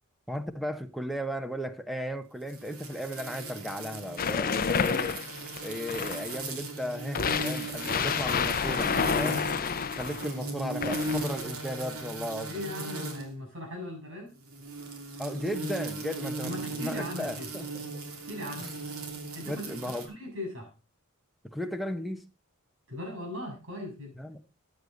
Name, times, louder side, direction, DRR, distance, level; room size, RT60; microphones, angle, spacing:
voice 1, 0.3-12.6 15.2-17.7 18.5-18.7 19.4-20.1 21.5-22.2 24.2-24.5, equal, ahead, 1.0 m, -36 dB
sound 1, 2.5-13.3 14.4-20.0, right 2 dB, 80° right, 2.9 m, -37 dB
sound 2, 4.2-6.4 7.2-10.3 10.8-11.4, left 6 dB, 40° left, 0.6 m, -29 dB
voice 2, 12.5-14.3 16.4-17.5 18.1-18.7 19.3-20.7 22.9-24.1, left 1 dB, 60° right, 7.3 m, -39 dB
13.5 x 9.8 x 4.0 m
head